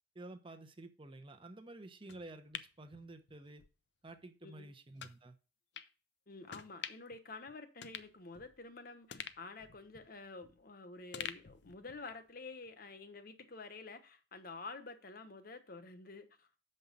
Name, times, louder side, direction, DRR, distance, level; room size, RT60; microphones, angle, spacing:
voice 1, 0.1-3.6 4.0-5.4, right 2 dB, 30° right, 0.9 m, -51 dB
sound 1, 2.1-3.7 4.1-4.2 5.0-5.2 5.7-5.9 6.5-7.2 7.5-7.6 7.8-8.7 9.1-10.7 11.1-12.3 12.6-12.7, left 8 dB, 75° left, 0.6 m, -48 dB
voice 2, 6.3-16.6, left 3 dB, 55° left, 1.1 m, -49 dB
7.2 x 5.5 x 5.2 m
head